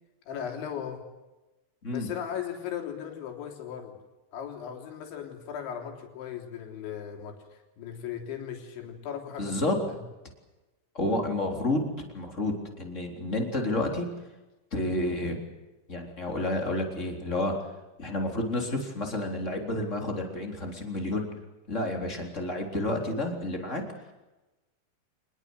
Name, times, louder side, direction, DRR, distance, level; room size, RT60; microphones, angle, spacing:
voice 1, 0.3-1.1 1.9-4.0 4.3-9.7, left 8 dB, 75° left, 4 dB, 5.6 m, -37 dB
voice 2, 9.4-9.8 10.9-14.1 14.7-15.4 15.9-17.5 18.0-21.3 21.7-23.8, left 1 dB, 15° left, 2 dB, 3.4 m, -30 dB
26.0 x 20.5 x 8.1 m, 1.1 s
omnidirectional pair, 5.5 m